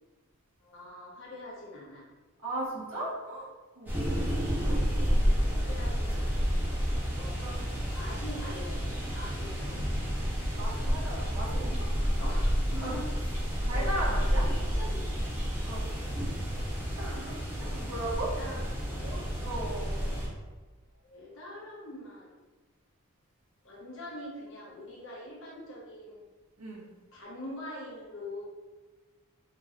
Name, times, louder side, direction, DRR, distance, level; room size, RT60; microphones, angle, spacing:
voice 1, 0.6-2.1 4.1-4.3 5.7-6.4 7.1-10.1 12.2-12.6 13.7-15.1 18.2-19.2 20.0-20.3 21.0-22.3 23.6-26.2 27.1-28.5, left 1 dB, 60° left, -5 dB, 1.1 m, -44 dB
voice 2, 2.4-3.5 3.7-5.6 6.0-6.5 7.3-7.6 10.5-12.3 12.7-14.4 15.7-15.9 17.0-18.3 19.4-20.2 26.6-26.9, right 1 dB, 85° right, -5 dB, 1.2 m, -38 dB
sound 1, 3.9-20.3, equal, 10° right, 0.9 m, -30 dB
3.7 x 3.0 x 2.5 m, 1.3 s
head